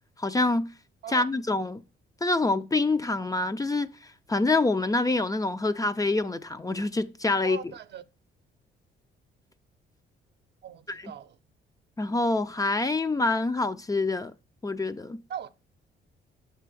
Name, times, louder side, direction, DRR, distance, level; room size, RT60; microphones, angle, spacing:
voice 1, 0.2-0.7 1.1-1.8 2.2-3.9 4.3-7.6 10.9-11.1 12.0-14.3 14.6-15.2, left 2 dB, 15° left, 0.4 m, -26 dB
voice 2, 7.4-8.0 10.6-11.4 15.3-15.5, right 9 dB, 60° right, 0.6 m, -39 dB
6.6 x 3.4 x 6.1 m
cardioid pair, 90°, 20 cm